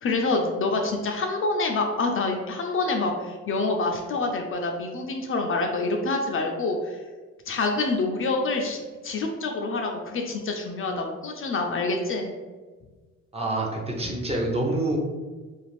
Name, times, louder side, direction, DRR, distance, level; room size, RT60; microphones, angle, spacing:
voice 1, 0.0-7.0 7.5-12.3, left 3 dB, 45° left, 2 dB, 0.4 m, -27 dB
voice 2, 13.3-15.0, right 2 dB, 20° right, -2 dB, 0.7 m, -26 dB
2.5 x 2.4 x 3.1 m, 1.3 s
cardioid pair, 90°, 30 cm